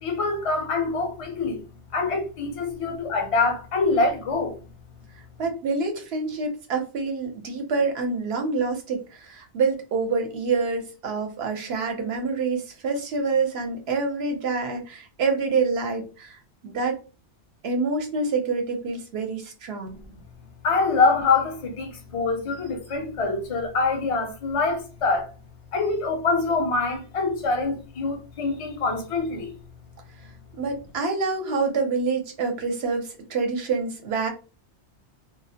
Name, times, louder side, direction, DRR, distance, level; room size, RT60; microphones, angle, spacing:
voice 1, 0.0-1.6 1.9-4.6 20.6-25.3 25.7-29.5 30.2-30.3, left 3 dB, 40° left, 0.5 m, -25 dB
voice 2, 5.4-17.0 17.6-20.0 30.6-34.3, right 4 dB, 65° right, 0.9 m, -27 dB
2.3 x 2.0 x 2.7 m
omnidirectional pair, 1.2 m